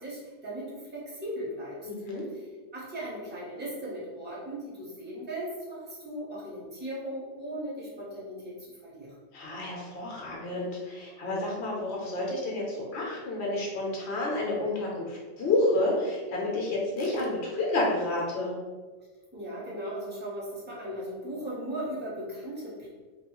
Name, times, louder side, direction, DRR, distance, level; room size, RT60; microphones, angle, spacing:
voice 1, 0.0-1.8 2.3-2.4 2.7-9.1 19.3-22.9, right 1 dB, 10° right, -6 dB, 0.6 m, -37 dB
voice 2, 1.8-2.2 9.3-18.5, left 2 dB, 70° left, -3 dB, 0.9 m, -30 dB
2.6 x 2.3 x 2.9 m, 1.4 s
omnidirectional pair, 1.2 m